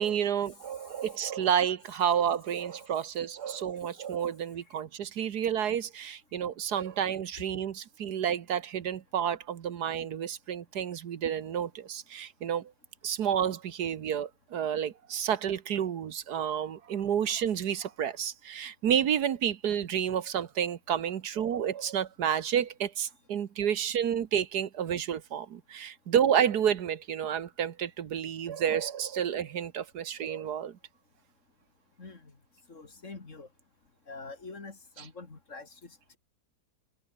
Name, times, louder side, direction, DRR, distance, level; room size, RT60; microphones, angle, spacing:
voice 1, 0.0-12.7 13.0-30.8, right 9 dB, 70° right, 1.6 m, -30 dB
voice 2, 32.0-32.3 32.7-33.5 34.1-36.2, left 3 dB, 45° left, 3.1 m, -45 dB
omnidirectional pair, 1.8 m